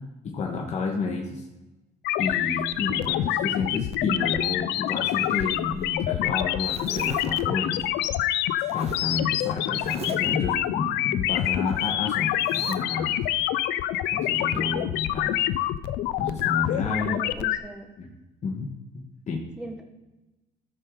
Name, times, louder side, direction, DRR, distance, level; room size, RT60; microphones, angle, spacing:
voice 1, 0.2-1.5 2.2-7.8 8.7-13.2 14.1-15.4 16.2-17.2 18.0-18.1 18.4-19.4, left 4 dB, 40° left, 0 dB, 1.4 m, -31 dB
sound 1, 2.0-17.6, left 13 dB, 85° left, 0.5 m, -26 dB
Zipper (clothing), 4.9-5.9 6.3-7.4 8.7-9.1 9.7-10.4 11.7-12.0 12.4-12.8, right 7 dB, 40° right, 0.7 m, -41 dB
voice 2, 14.5-14.9 16.8-17.9 19.6-19.8, right 1 dB, 5° right, 3 dB, 1.2 m, -38 dB
13.0 x 6.5 x 3.8 m, 1.0 s
cardioid pair, 110°, 17 cm